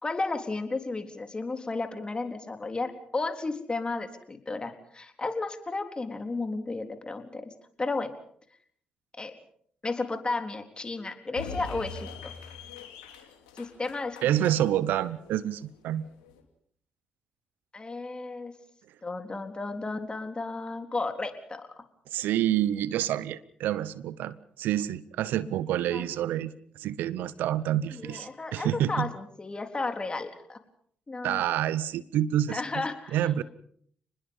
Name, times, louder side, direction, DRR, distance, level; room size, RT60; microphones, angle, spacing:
voice 1, 0.0-8.1 9.2-9.3 9.8-12.3 13.6-14.5 17.7-18.6 19.0-21.8 25.4-25.6 25.9-26.1 27.9-30.6 31.1-31.4 32.5-33.4, left 3 dB, 30° left, 6 dB, 3.8 m, -33 dB
sound 1, 11.3-16.4, left 5 dB, 90° left, 2.9 m, -43 dB
voice 2, 14.2-16.0 22.1-29.1 31.2-32.8 33.1-33.4, right 12 dB, 75° right, 19 dB, 0.9 m, -28 dB
29.5 x 20.5 x 5.6 m, 0.62 s
hypercardioid pair, 45°, 3 cm